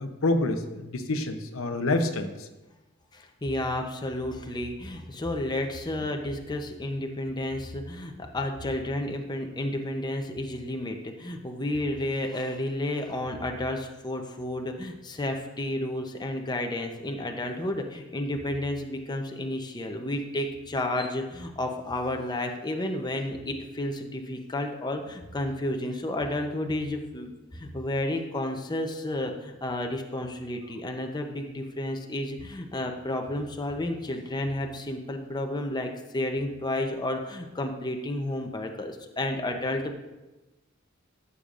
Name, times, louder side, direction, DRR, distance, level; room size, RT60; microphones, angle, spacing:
voice 1, 0.0-2.5, left 2 dB, 85° left, 7 dB, 0.8 m, -27 dB
voice 2, 3.1-40.0, left 1 dB, 20° left, 3 dB, 0.7 m, -31 dB
14.0 x 6.9 x 2.5 m, 1.1 s
head